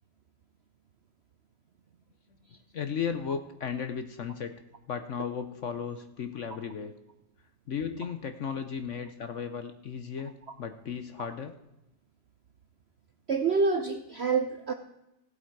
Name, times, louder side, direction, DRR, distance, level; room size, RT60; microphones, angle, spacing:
voice 1, 2.7-4.5 4.9-6.9 7.7-11.6, left 7 dB, 55° left, 9 dB, 0.9 m, -35 dB
voice 2, 13.3-14.7, right 4 dB, 60° right, 7 dB, 0.6 m, -27 dB
16.5 x 8.1 x 4.6 m, 0.92 s
omnidirectional pair, 1.9 m